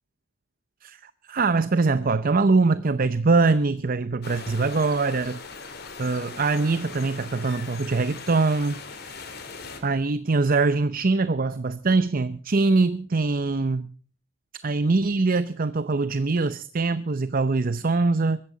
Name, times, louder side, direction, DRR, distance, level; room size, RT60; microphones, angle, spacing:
voice 1, 0.8-5.4 6.0-9.2 9.8-13.9 14.6-18.4, right 3 dB, 45° right, 0.7 m, -23 dB
sound 1, 4.2-9.8, left 4 dB, 55° left, 3.3 m, -40 dB
23.0 x 14.5 x 3.9 m
head